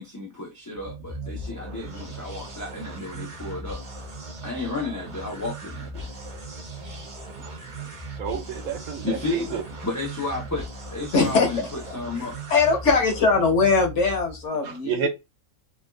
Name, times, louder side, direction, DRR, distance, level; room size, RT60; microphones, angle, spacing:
voice 1, 0.0-3.8 4.4-6.1 7.4-7.9 9.0-12.4, left 2 dB, 30° left, 0.3 m, -32 dB
sound 1, 0.7-14.5, right 1 dB, 40° right, 0.8 m, -38 dB
voice 2, 8.2-9.6 14.6-15.1, right 7 dB, 75° right, 1.1 m, -29 dB
voice 3, 11.1-11.5 12.5-15.0, left 4 dB, 55° left, 1.1 m, -21 dB
3.4 x 2.3 x 2.2 m
omnidirectional pair, 1.6 m